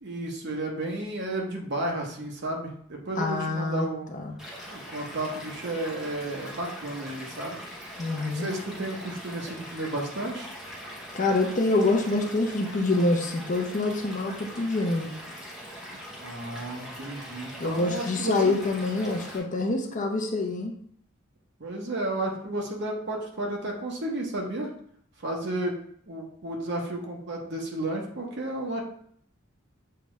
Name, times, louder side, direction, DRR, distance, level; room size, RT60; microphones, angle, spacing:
voice 1, 0.0-4.1 4.7-7.6 8.3-10.5 16.2-18.5 21.6-24.7 25.2-25.7 26.1-28.8, right 1 dB, 55° right, 0 dB, 0.9 m, -32 dB
voice 2, 3.2-3.9 4.1-4.4 8.0-8.5 11.1-15.1 17.6-20.7, left 2 dB, 40° left, 3 dB, 0.6 m, -26 dB
Stream / Liquid, 4.4-19.4, equal, 5° right, 0.8 m, -42 dB
6.7 x 2.4 x 3.1 m, 0.63 s
head